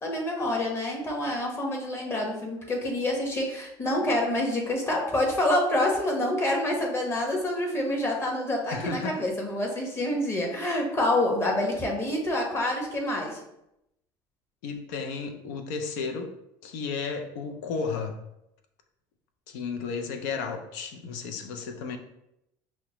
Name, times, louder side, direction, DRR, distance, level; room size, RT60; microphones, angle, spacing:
voice 1, 0.0-13.4, left 1 dB, 25° left, 0 dB, 1.1 m, -27 dB
voice 2, 8.7-9.2 14.6-16.3 16.6-18.2 19.5-22.0, left 5 dB, 90° left, 5 dB, 0.5 m, -33 dB
5.6 x 2.1 x 3.0 m, 0.84 s
supercardioid pair, 100°, 10 cm